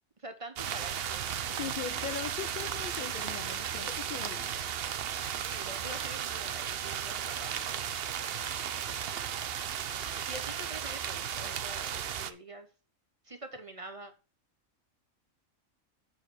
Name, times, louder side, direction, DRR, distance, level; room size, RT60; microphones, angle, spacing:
voice 1, 0.2-1.2 5.5-7.8 10.3-12.7 13.2-14.1, right 2 dB, 30° right, 0.9 m, -46 dB
sound 1, 0.6-12.3, right 9 dB, 55° right, 0.8 m, -35 dB
voice 2, 1.5-4.5, left 8 dB, 65° left, 0.5 m, -40 dB
7.5 x 4.7 x 6.2 m
omnidirectional pair, 1.4 m